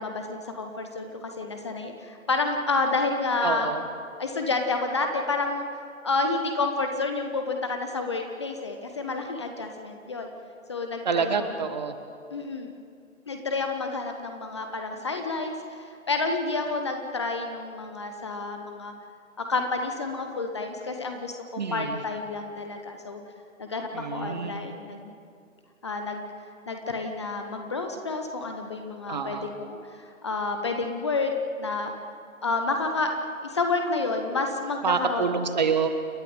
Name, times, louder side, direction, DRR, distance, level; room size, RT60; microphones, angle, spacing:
voice 1, 0.0-3.7 4.2-5.7 6.0-10.3 10.7-11.5 12.3-12.7 13.3-18.9 19.4-23.2 23.6-25.1 25.8-26.2 26.7-31.3 31.6-31.9 32.4-33.1 33.4-35.4, left 3 dB, 20° left, 5 dB, 0.9 m, -29 dB
voice 2, 3.4-3.8 11.0-11.9 21.6-22.0 23.9-24.6 29.1-29.5 34.8-35.9, right 5 dB, 30° right, 8 dB, 1.4 m, -27 dB
29.0 x 11.0 x 9.1 m, 2.3 s
figure-of-eight pair, 145°, 41 cm